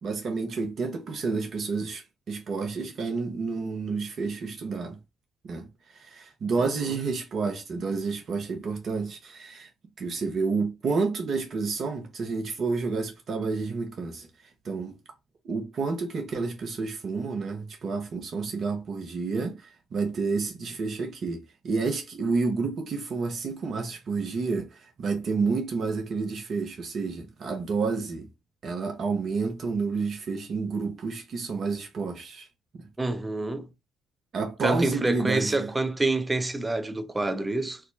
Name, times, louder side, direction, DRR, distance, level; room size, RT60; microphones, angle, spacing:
voice 1, 0.0-5.0 5.4-9.7 10.0-14.3 14.6-15.0 15.4-28.3 28.6-32.5 32.7-32.9 34.3-35.7, right 4 dB, 55° right, 0.8 m, -30 dB
voice 2, 6.6-6.9 33.0-33.7 34.6-37.8, right 2 dB, 20° right, 0.7 m, -27 dB
4.6 x 2.1 x 2.2 m
hypercardioid pair, 55°, 0 cm